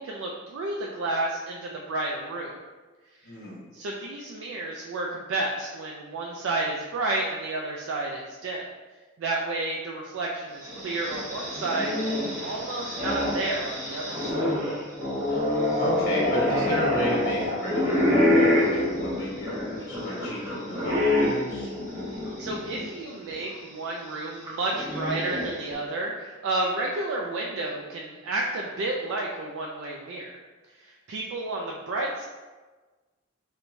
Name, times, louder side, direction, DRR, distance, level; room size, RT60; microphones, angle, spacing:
voice 1, 0.0-2.6 3.7-8.7 9.2-14.5 22.4-30.3 30.8-32.2, right 2 dB, 75° right, -1 dB, 0.4 m, -31 dB
voice 2, 3.2-3.6 15.3-15.4 15.7-21.7, left 1 dB, 55° left, -6 dB, 1.2 m, -32 dB
sound 1, 10.6-22.9 23.3-23.4 24.5-25.7, left 1 dB, 20° right, 1.1 m, -26 dB
4.5 x 2.1 x 2.6 m, 1.3 s
head